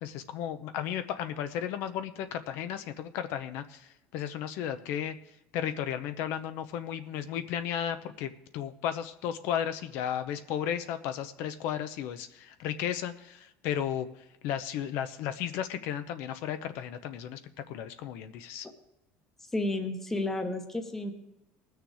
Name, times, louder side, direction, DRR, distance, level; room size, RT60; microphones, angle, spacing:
voice 1, 0.0-5.1 5.5-14.1 14.4-17.4 17.7-18.7, left 9 dB, 65° left, 10 dB, 0.8 m, -34 dB
voice 2, 19.5-21.1, left 2 dB, 10° left, 6 dB, 1.0 m, -31 dB
20.0 x 6.6 x 4.8 m, 0.92 s
cardioid pair, 170°, 4 cm